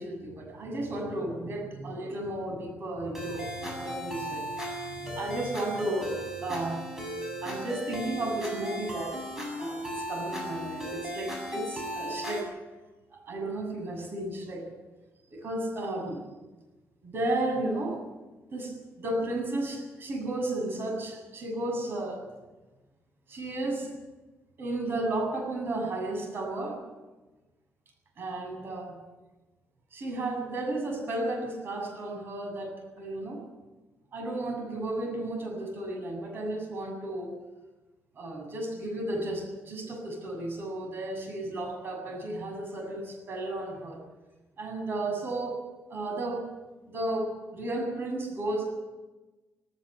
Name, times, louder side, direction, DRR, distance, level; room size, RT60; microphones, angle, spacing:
voice 1, 0.0-6.8 7.4-9.2 9.6-12.5 13.1-14.6 15.3-16.2 17.0-18.0 18.5-22.2 23.3-23.9 24.6-26.8 28.2-29.0 29.9-33.4 34.1-37.3 38.2-44.0 44.6-45.6 45.9-46.4 46.9-48.7, right 2 dB, 50° right, 3 dB, 7.5 m, -33 dB
Hello Picnic Ice Cream Truck Song, 3.1-12.4, equal, 10° right, 7.7 m, -36 dB
18.5 x 17.5 x 9.9 m, 1.1 s
cardioid pair, 130°, 5 cm